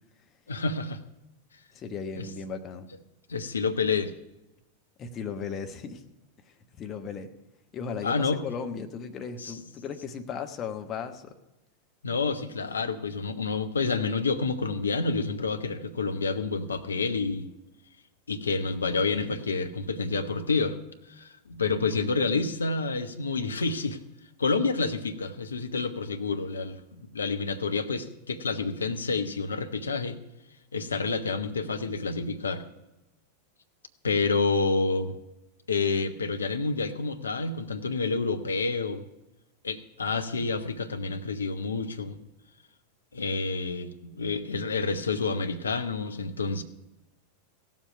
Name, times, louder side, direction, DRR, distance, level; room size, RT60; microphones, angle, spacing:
voice 1, 0.5-1.0 2.1-2.3 3.3-4.1 8.0-8.4 9.4-9.6 12.0-17.5 18.3-20.8 21.1-24.0 24.4-30.2 30.7-32.6 34.0-35.1 35.7-39.0 39.6-42.2 43.1-46.6, left 4 dB, 75° left, 8 dB, 0.9 m, -29 dB
voice 2, 1.7-2.9 5.0-6.0 6.7-7.3 7.7-11.3, left 6 dB, 30° left, 6 dB, 1.1 m, -36 dB
16.0 x 7.4 x 5.7 m, 0.96 s
figure-of-eight pair, 90°, 0 cm